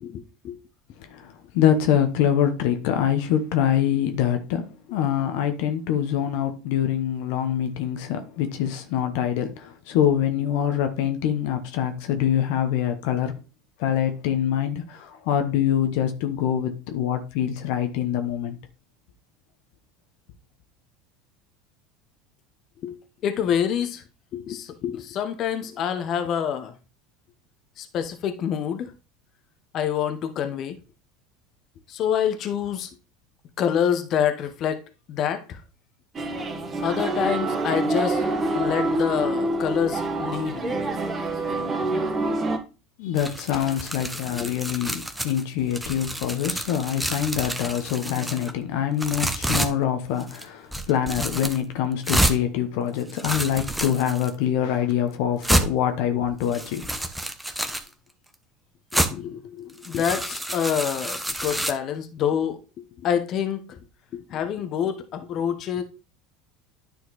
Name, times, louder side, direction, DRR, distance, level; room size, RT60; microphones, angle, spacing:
voice 1, 0.0-0.6 22.8-23.0 23.2-24.0 24.3-26.7 27.8-28.9 29.7-30.8 31.9-32.9 33.6-34.8 35.1-35.6 36.8-38.2 38.5-40.8 44.3-44.5 58.9-63.8 64.1-65.8, left 8 dB, 50° left, 1.1 m, -27 dB
voice 2, 1.1-13.3 13.8-18.6 43.0-56.9, left 10 dB, 70° left, 1.1 m, -25 dB
sound 1, 36.1-42.6, right 2 dB, 30° right, 1.6 m, -26 dB
sound 2, 43.2-45.4 45.7-48.5 49.0-49.7 50.2-50.4 50.7-51.6 52.0-52.4 53.0-54.3 54.9-55.0 55.4-55.7 56.4-57.9 58.9-59.1 59.7-61.7, right 1 dB, 5° right, 1.1 m, -28 dB
9.9 x 4.3 x 4.1 m
hypercardioid pair, 90°, 0 cm